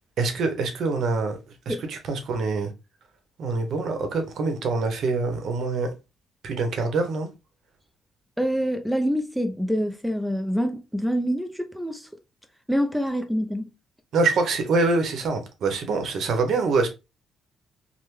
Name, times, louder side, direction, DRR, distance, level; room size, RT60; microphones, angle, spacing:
voice 1, 0.2-1.4 1.7-2.7 3.4-5.9 6.4-7.3 14.1-16.9, right 3 dB, 70° right, 0.8 m, -25 dB
voice 2, 8.4-12.1 12.7-13.7, equal, ahead, 0.4 m, -26 dB
3.3 x 2.1 x 3.1 m
cardioid pair, 90°, 0 cm